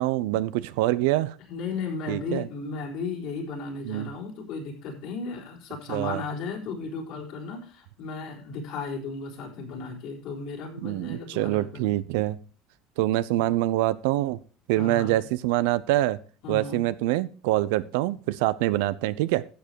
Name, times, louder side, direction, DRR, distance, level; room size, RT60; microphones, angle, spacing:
voice 1, 0.0-1.4 2.1-2.5 3.9-4.1 5.9-6.2 10.8-12.4 13.0-14.4 14.7-16.2 16.5-19.5, right 16 dB, 80° right, 17 dB, 0.6 m, -25 dB
voice 2, 1.5-11.9 13.3-13.4 14.7-15.2 16.4-16.8, left 4 dB, 70° left, 0 dB, 4.0 m, -35 dB
12.0 x 7.6 x 4.6 m, 0.38 s
supercardioid pair, 95°, 0 cm